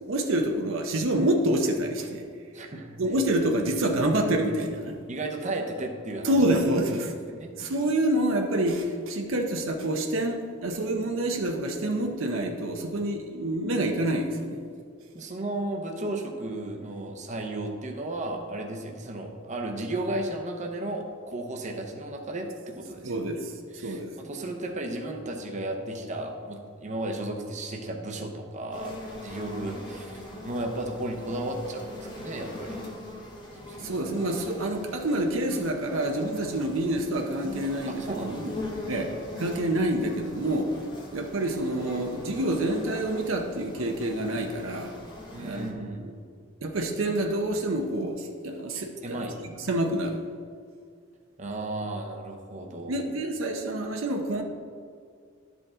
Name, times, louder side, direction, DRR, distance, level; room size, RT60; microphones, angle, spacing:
voice 1, 0.0-2.2 3.0-5.0 6.2-7.1 7.5-14.6 23.0-23.5 23.8-24.1 33.8-38.5 38.9-39.1 39.4-40.7 41.1-44.9 45.4-46.1 46.6-49.3 49.7-50.2 52.9-54.4, right 1 dB, 70° right, 4 dB, 0.7 m, -27 dB
voice 2, 2.5-3.0 5.1-6.4 7.0-7.5 15.1-23.2 23.7-29.0 29.2-33.0 33.6-33.9 37.9-38.4 38.8-39.0 45.3-46.1 49.0-49.7 51.4-53.1, right 1 dB, 35° right, 2 dB, 0.8 m, -34 dB
sound 1, 28.7-45.7, left 1 dB, 20° left, 1.1 m, -42 dB
11.0 x 5.1 x 3.7 m, 2.1 s
head